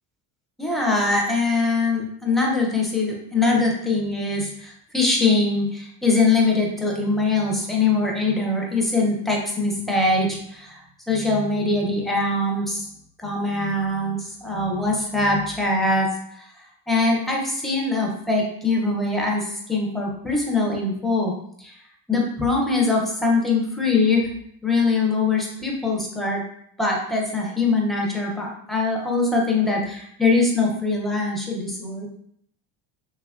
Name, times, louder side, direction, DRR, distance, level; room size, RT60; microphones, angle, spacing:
voice 1, 0.6-10.8 11.1-12.9 13.2-16.1 16.9-21.3 21.6-21.7 22.1-24.3 24.6-26.4 26.8-32.1, left 3 dB, ahead, -2 dB, 0.5 m, -22 dB
3.1 x 2.2 x 2.3 m, 0.68 s
supercardioid pair, 90°, 45 cm